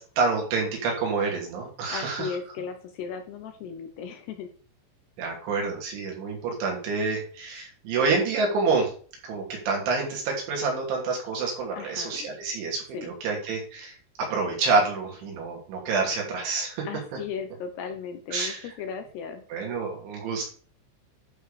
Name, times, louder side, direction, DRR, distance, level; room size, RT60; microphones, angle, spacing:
voice 1, 0.0-2.4 5.2-8.9 9.2-16.9 18.3-18.7 19.5-20.5, right 4 dB, 75° right, 0 dB, 5.2 m, -28 dB
voice 2, 1.9-4.5 11.8-12.3 12.9-13.1 16.9-19.5, left 6 dB, 75° left, 6 dB, 2.7 m, -36 dB
11.0 x 4.8 x 5.0 m, 0.42 s
omnidirectional pair, 5.5 m